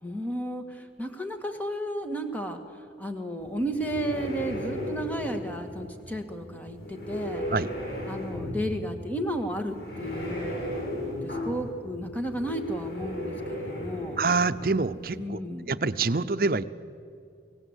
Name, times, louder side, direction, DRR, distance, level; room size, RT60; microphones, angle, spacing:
voice 1, 0.0-7.5 8.1-10.6 11.2-14.2 15.2-15.7, equal, 10° left, 5 dB, 1.7 m, -33 dB
sound 1, 3.4-15.2, equal, 65° left, 8.0 m, -36 dB
voice 2, 14.2-15.4 15.7-16.6, right 4 dB, 55° right, 13 dB, 0.7 m, -26 dB
29.5 x 17.0 x 8.2 m, 2.5 s
head